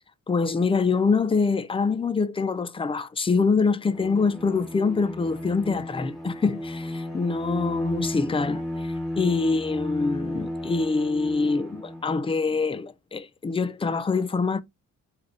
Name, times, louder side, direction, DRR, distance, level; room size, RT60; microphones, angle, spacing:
voice 1, 0.3-14.6, left 4 dB, 15° left, 0.4 m, -25 dB
Bowed string instrument, 3.8-12.3, left 1 dB, ahead, 1.2 m, -34 dB
3.6 x 2.5 x 3.3 m
supercardioid pair, 65°, 35 cm